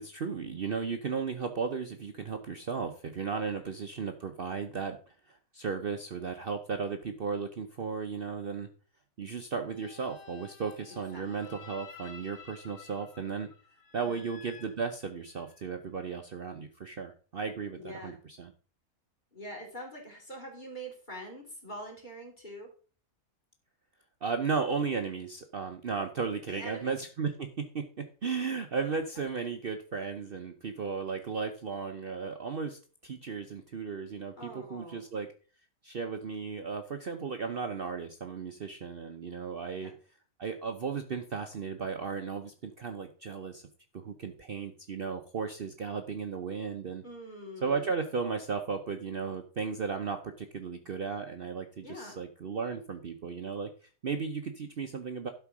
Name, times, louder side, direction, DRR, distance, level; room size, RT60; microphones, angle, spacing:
voice 1, 0.0-8.7 9.2-13.5 13.9-18.5 24.2-35.3 35.8-39.9 40.4-43.6 43.9-47.0 47.6-55.3, right 5 dB, 45° right, 6 dB, 0.9 m, -35 dB
sound 1, 9.6-15.6, left 6 dB, 65° left, 1.7 m, -52 dB
voice 2, 11.1-11.5 14.0-14.2 17.8-18.2 19.3-22.7 26.5-26.9 34.4-35.0 39.8-39.9 47.0-47.9 51.8-52.2, equal, 30° left, 0 dB, 3.2 m, -44 dB
12.0 x 4.6 x 6.0 m, 0.40 s
omnidirectional pair, 1.5 m